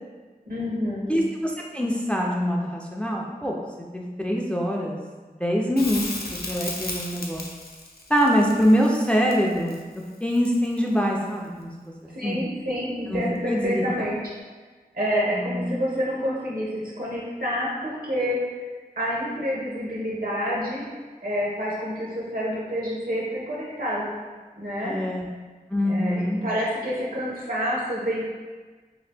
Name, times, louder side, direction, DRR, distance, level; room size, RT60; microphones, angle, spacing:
voice 1, 0.5-1.1 12.1-14.2 14.9-18.6 19.0-20.8 21.2-24.1 24.6-24.9 25.9-28.2, equal, 70° right, -5 dB, 0.9 m, -28 dB
voice 2, 1.1-3.6 3.9-5.0 5.2-6.0 6.5-7.4 8.1-9.8 10.2-11.7 12.2-12.4 13.1-13.2 13.5-14.1 15.3-15.7 24.8-25.2 25.7-26.4, equal, 5° left, -1 dB, 0.4 m, -24 dB
Crackle, 5.8-10.9 13.6-13.7, left 2 dB, 80° left, 0.5 m, -35 dB
2.9 x 2.5 x 3.3 m, 1.4 s
wide cardioid pair, 50°, 16 cm